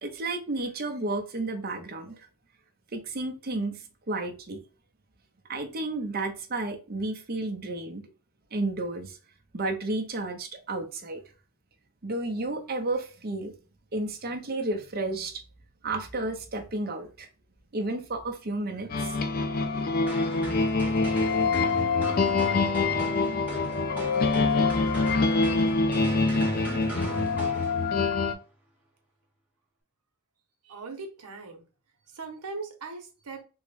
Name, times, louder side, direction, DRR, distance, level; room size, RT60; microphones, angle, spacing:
voice 1, 0.0-2.2 2.9-4.6 5.5-8.0 8.5-9.2 9.5-11.2 12.0-13.5 13.9-15.4 15.8-17.3 17.7-19.2, right 2 dB, 45° right, 0.6 m, -32 dB
sound 1, 18.9-28.3, left 3 dB, 40° left, 0.4 m, -25 dB
sound 2, 20.1-28.2, right 1 dB, 5° right, 1.0 m, -38 dB
voice 2, 30.6-31.6 32.1-33.4, right 4 dB, 90° right, 0.9 m, -39 dB
3.5 x 2.1 x 3.2 m
head